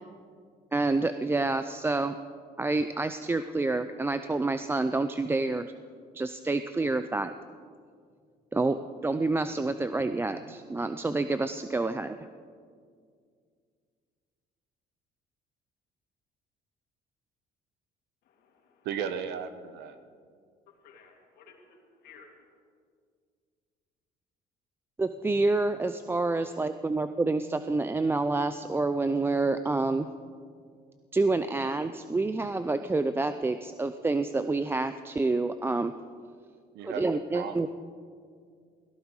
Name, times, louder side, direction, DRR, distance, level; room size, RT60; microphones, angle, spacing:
voice 1, 0.7-2.2 2.6-5.7 6.1-7.3 8.5-8.8 9.0-12.2 25.0-30.1 31.1-35.9 36.8-37.7, right 3 dB, 15° right, 10 dB, 0.4 m, -28 dB
voice 2, 18.2-18.7 20.7-22.6, left 5 dB, 75° left, 1 dB, 2.9 m, -56 dB
voice 3, 18.8-20.0 36.7-37.0 37.3-37.5, right 7 dB, 85° right, 10 dB, 1.1 m, -35 dB
17.5 x 15.5 x 4.8 m, 2.1 s
cardioid pair, 110°, 17 cm